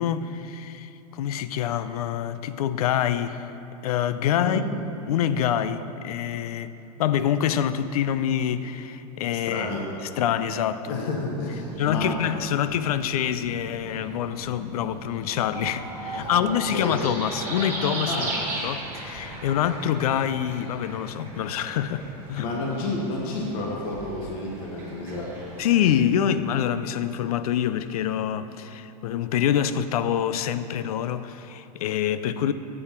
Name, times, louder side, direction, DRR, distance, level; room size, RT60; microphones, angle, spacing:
voice 1, 0.0-3.5 3.8-4.6 5.1-6.7 7.0-9.7 10.2-11.1 11.8-18.3 18.6-22.5 25.6-32.5, left 9 dB, 65° left, 0.4 m, -26 dB
voice 2, 9.5-9.9 10.9-12.2 16.1-17.0 18.1-18.4 22.4-25.4, left 2 dB, 35° left, 1.1 m, -30 dB
sound 1, 11.3-25.9, right 2 dB, 10° right, 1.2 m, -37 dB
10.5 x 7.8 x 4.4 m
supercardioid pair, 175°, 21 cm